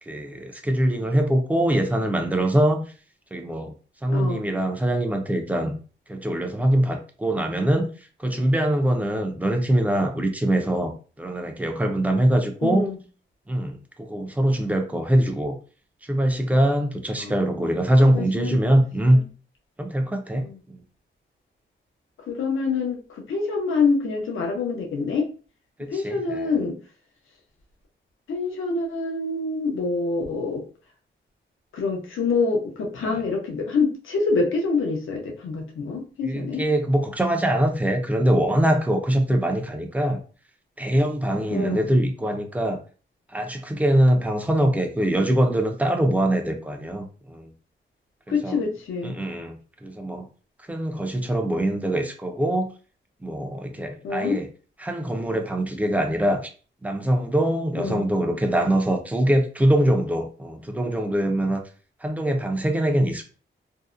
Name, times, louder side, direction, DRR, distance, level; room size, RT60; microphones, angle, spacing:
voice 1, 0.0-2.9 3.3-3.7 4.0-5.8 6.1-7.9 8.2-12.9 13.5-15.6 16.0-19.2 19.8-20.8 25.8-26.5 33.0-33.2 36.2-40.2 40.8-42.8 43.3-47.5 48.3-48.6 49.0-50.3 50.6-52.7 53.2-54.5 54.8-56.5 56.8-61.6 62.0-63.2, right 1 dB, 5° right, 4 dB, 0.4 m, -23 dB
voice 2, 4.1-4.5 12.6-13.0 17.2-17.5 18.1-18.6 20.4-20.6 22.3-25.3 25.9-26.8 28.3-30.6 31.7-36.7 41.5-41.9 48.3-49.2 54.0-54.4 57.7-58.1, left 4 dB, 90° left, 1 dB, 0.6 m, -26 dB
2.6 x 2.0 x 2.4 m, 0.38 s
wide cardioid pair, 120°, 20 cm